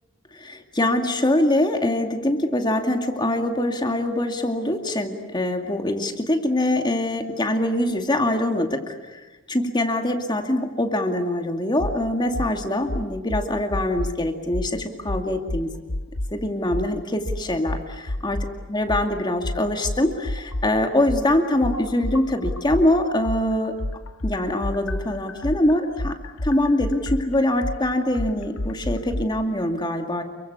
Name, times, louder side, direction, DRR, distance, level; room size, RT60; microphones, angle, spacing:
voice 1, 0.3-9.2 9.5-15.7 16.3-18.4 18.7-23.7 24.2-26.2 26.4-30.2, left 1 dB, 20° left, 5 dB, 2.3 m, -23 dB
sound 1, 11.8-12.0 12.3-12.5 12.9-14.2 14.5-14.7 15.1-16.3 16.7-16.9 17.2-18.5 18.9-22.9 23.2-29.2, left 1 dB, 90° left, 1.4 m, -29 dB
29.0 x 24.0 x 8.3 m, 1.1 s
head